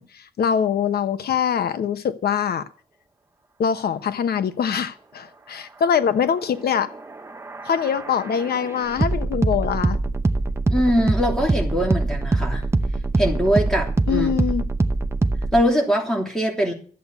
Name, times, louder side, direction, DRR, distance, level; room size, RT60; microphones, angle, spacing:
voice 1, 0.0-2.7 3.6-6.9 7.6-10.0 14.1-14.6, left 7 dB, 85° left, 10 dB, 0.9 m, -23 dB
sound 1, 6.9-15.6, right 2 dB, 15° right, 0.8 m, -23 dB
voice 2, 10.7-12.6 13.2-14.3 15.5-16.7, equal, 5° left, 0 dB, 3.2 m, -22 dB
13.5 x 8.2 x 8.2 m, 0.43 s
wide cardioid pair, 180°, 16 cm